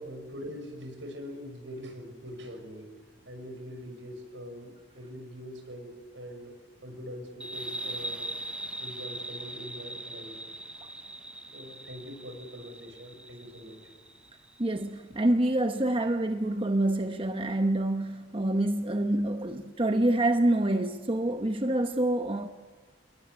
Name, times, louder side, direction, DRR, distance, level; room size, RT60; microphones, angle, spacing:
voice 1, 0.0-2.9 3.3-6.5 6.8-8.3 8.8-10.4 11.5-13.8, equal, 80° right, 6.4 m, -43 dB
sound 1, 7.4-14.6, right 1 dB, 5° right, 0.7 m, -40 dB
voice 2, 14.6-22.5, right 1 dB, 30° right, 1.0 m, -27 dB
27.5 x 21.5 x 9.6 m
head